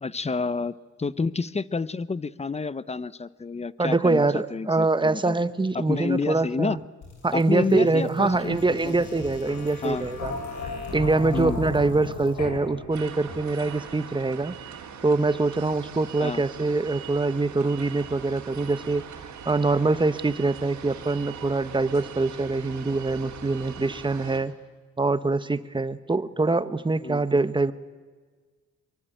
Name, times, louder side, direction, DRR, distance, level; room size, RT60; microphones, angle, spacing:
voice 1, 0.0-5.4 5.7-6.8 7.3-9.0 9.8-10.0 11.3-11.6 16.2-16.4 27.0-27.2, left 4 dB, 20° left, 17 dB, 0.9 m, -29 dB
voice 2, 3.8-6.8 7.2-10.3 10.6-14.6 15.0-19.0 19.4-24.5 25.0-27.7, right 3 dB, 15° right, 13 dB, 1.2 m, -24 dB
sound 1, 7.0-13.7, left 2 dB, 70° left, 7.6 m, -36 dB
sound 2, 12.9-24.4, right 7 dB, 70° right, 3.8 m, -41 dB
24.5 x 23.0 x 9.1 m, 1.4 s
cardioid pair, 90°, 30 cm